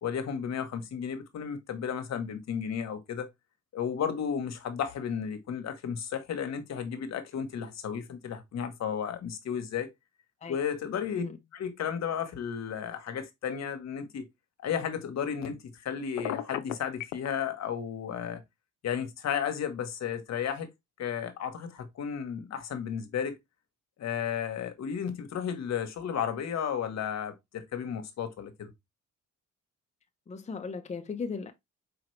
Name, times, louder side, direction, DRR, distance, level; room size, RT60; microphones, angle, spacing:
voice 1, 0.0-3.3 3.7-9.9 10.5-11.2 11.5-14.3 14.6-18.4 18.8-20.7 21.0-23.4 24.0-28.7, left 8 dB, 60° left, 1.0 m, -33 dB
Telephone, 16.2-17.3, left 12 dB, 85° left, 0.5 m, -33 dB
voice 2, 30.3-31.5, left 5 dB, 25° left, 0.6 m, -36 dB
4.9 x 2.9 x 3.1 m
cardioid pair, 90°, 30 cm